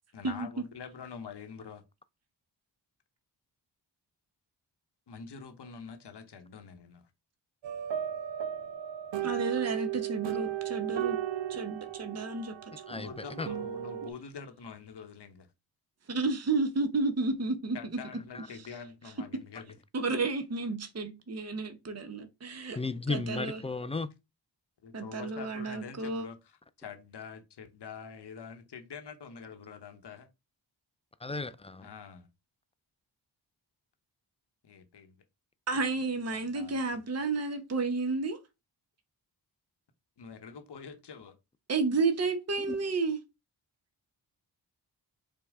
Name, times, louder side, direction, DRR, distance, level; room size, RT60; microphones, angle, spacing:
voice 1, 0.1-1.8 5.1-7.1 13.0-15.5 17.7-19.8 24.8-30.3 31.8-32.3 34.6-35.2 36.3-36.8 40.2-41.4, left 6 dB, 60° left, 1.0 m, -46 dB
sound 1, 7.6-14.1, right 11 dB, 65° right, 0.7 m, -35 dB
voice 2, 9.2-11.2 11.5-12.5 12.9-13.1 16.1-17.8 19.9-22.8 23.1-23.6 24.9-26.3 35.7-38.4 41.7-43.2, right 3 dB, 35° right, 0.9 m, -31 dB
voice 3, 12.9-13.5 18.3-18.5 22.8-24.1 31.2-31.9 42.7-42.8, left 3 dB, 15° left, 0.3 m, -34 dB
5.1 x 2.3 x 3.5 m
cardioid pair, 45°, 47 cm